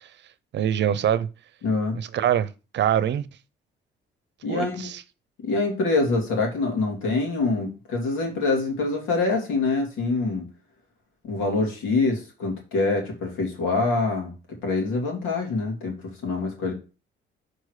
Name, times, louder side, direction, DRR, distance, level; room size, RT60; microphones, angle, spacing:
voice 1, 0.5-1.3 1.9-3.3 4.5-5.0, right 10 dB, 65° right, 0.7 m, -24 dB
voice 2, 1.6-2.0 4.4-4.9 5.4-10.5 11.2-16.7, left 3 dB, 90° left, 2.8 m, -25 dB
6.4 x 4.5 x 4.9 m
cardioid pair, 90°, 20 cm